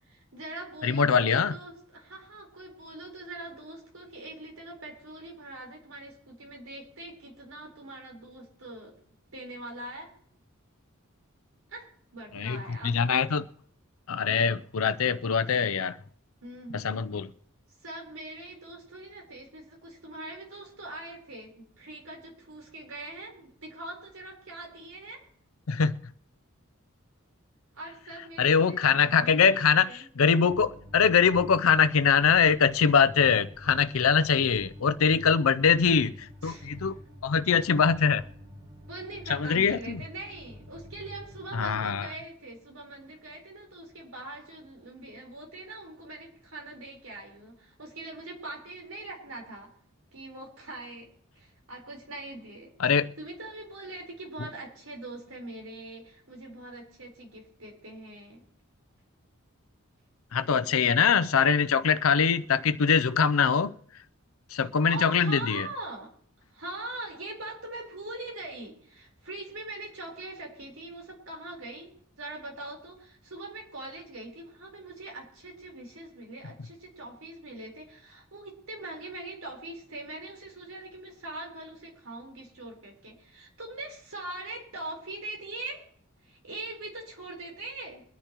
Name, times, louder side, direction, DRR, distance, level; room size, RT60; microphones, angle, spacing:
voice 1, 0.0-8.9 9.3-10.1 11.7-12.9 16.4-17.1 17.8-25.2 27.7-30.1 36.4-36.9 38.9-49.7 50.1-51.1 51.3-52.7 53.2-58.4 64.6-66.1 66.5-85.9 86.2-88.0, right 2 dB, 85° right, 4.2 m, -42 dB
voice 2, 0.8-1.5 12.3-13.5 14.1-15.9 16.7-17.3 25.7-25.9 28.4-29.9 30.2-37.0 37.2-38.2 39.3-40.0 41.5-42.1 52.8-53.1 60.3-63.7 64.5-65.7, left 6 dB, 80° left, 0.6 m, -23 dB
sound 1, 30.5-41.7, equal, 25° right, 5.3 m, -47 dB
23.5 x 10.0 x 3.0 m
head